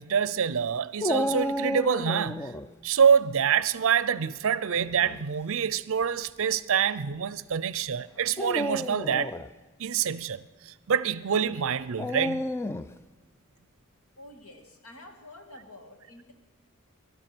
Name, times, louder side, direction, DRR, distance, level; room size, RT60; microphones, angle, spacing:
voice 1, 0.0-2.5 2.8-9.3 9.8-10.4 10.9-12.5, right 7 dB, 65° right, 0.5 m, -26 dB
Dog, 1.0-2.7 4.7-5.2 6.0-6.1 8.3-9.5 12.0-13.0, equal, 10° left, 0.4 m, -31 dB
voice 2, 14.2-16.3, left 1 dB, 90° left, 2.3 m, -48 dB
19.5 x 12.0 x 6.1 m
head